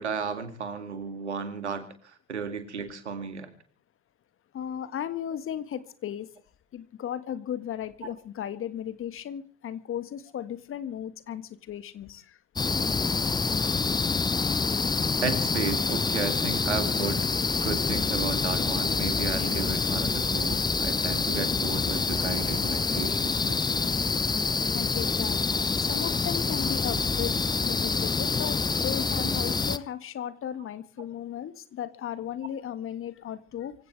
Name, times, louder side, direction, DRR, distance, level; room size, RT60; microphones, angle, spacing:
voice 1, 0.0-3.5 8.0-8.1 15.2-17.2 17.6-23.9 29.2-29.3, right 5 dB, 80° right, 2.4 m, -34 dB
voice 2, 4.5-6.3 6.7-12.4 24.7-25.4 25.8-33.7, left 10 dB, 40° left, 1.8 m, -36 dB
sound 1, 12.6-29.8, left 4 dB, 10° left, 0.7 m, -27 dB
sound 2, 15.8-27.7, equal, 10° right, 4.6 m, -45 dB
25.0 x 16.5 x 3.4 m
figure-of-eight pair, 60°, 34 cm